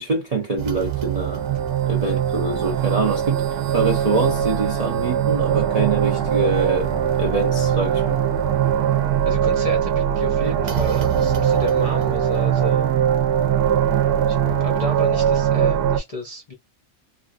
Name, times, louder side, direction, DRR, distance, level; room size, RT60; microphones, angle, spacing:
voice 1, 0.0-1.5 1.9-8.2, right 3 dB, 50° right, 0.4 m, -25 dB
sound 1, 0.6-16.0, right 9 dB, 80° right, 1.1 m, -21 dB
voice 2, 9.2-13.0 14.3-16.5, left 3 dB, 40° left, 0.5 m, -32 dB
3.2 x 2.4 x 2.4 m
omnidirectional pair, 1.6 m